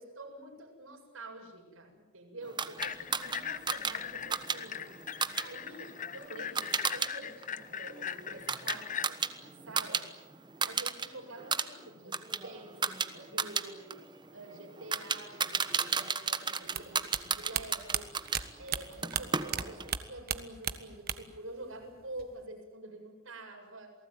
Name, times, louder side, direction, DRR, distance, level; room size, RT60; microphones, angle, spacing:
voice 1, 0.0-4.9 5.3-10.0 10.6-13.9 14.3-18.2 18.6-23.9, right 2 dB, 90° right, 2 dB, 7.7 m, -47 dB
sound 1, 2.6-7.1 7.4-10.0 10.3-11.1 11.4-18.4 19.0-19.9, right 5 dB, 20° right, 1.2 m, -34 dB
sound 2, 2.8-9.1, left 8 dB, 40° left, 0.8 m, -40 dB
sound 3, 16.7-19.6 19.9-21.4 21.7-22.4, right 9 dB, 50° right, 1.5 m, -34 dB
28.5 x 19.0 x 9.5 m, 1.2 s
head